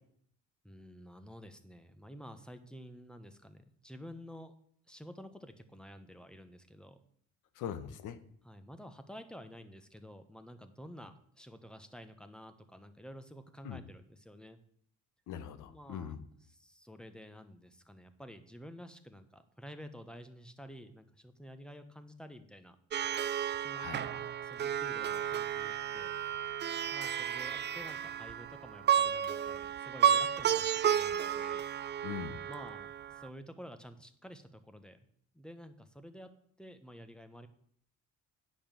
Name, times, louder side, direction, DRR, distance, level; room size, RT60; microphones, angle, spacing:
voice 1, 0.6-4.5 4.9-7.0 8.4-14.6 15.6-16.2 16.5-22.8 23.6-26.2 26.9-31.6 32.5-35.1 35.3-36.3 36.6-37.5, equal, 5° left, 10 dB, 1.0 m, -51 dB
voice 2, 7.5-8.2 13.6-13.8 15.3-16.2 23.7-24.0 32.0-32.4, left 9 dB, 85° left, 12 dB, 1.0 m, -41 dB
Plucked string instrument, 22.9-33.3, right 9 dB, 35° right, 0.4 m, -32 dB
8.7 x 5.3 x 7.4 m, 0.64 s
cardioid pair, 90°, 30 cm